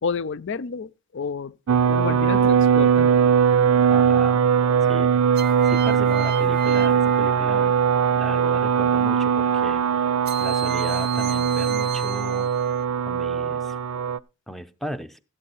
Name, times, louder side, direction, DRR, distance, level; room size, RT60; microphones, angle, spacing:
voice 1, 0.0-3.1, left 5 dB, 55° left, 0.5 m, -30 dB
sound 1, 1.7-14.2, right 7 dB, 85° right, 0.5 m, -20 dB
sound 2, 2.3-2.8 5.4-8.0 10.3-12.8, right 8 dB, 45° right, 0.6 m, -36 dB
voice 2, 3.8-4.5 4.8-5.2 5.6-7.7 8.1-10.1 10.4-12.6 13.1-13.8 14.5-15.2, equal, ahead, 0.7 m, -36 dB
13.5 x 8.7 x 4.1 m
head